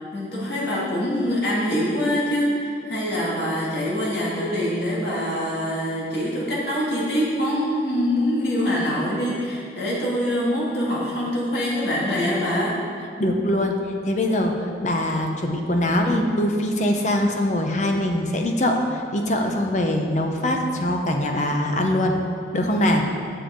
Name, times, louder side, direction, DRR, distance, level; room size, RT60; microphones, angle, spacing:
voice 1, 0.1-12.8, equal, 70° left, -5 dB, 2.1 m, -24 dB
voice 2, 13.2-13.8 14.1-22.1 22.5-23.0, left 1 dB, 40° left, 3 dB, 0.7 m, -22 dB
9.3 x 6.6 x 3.8 m, 2.5 s
head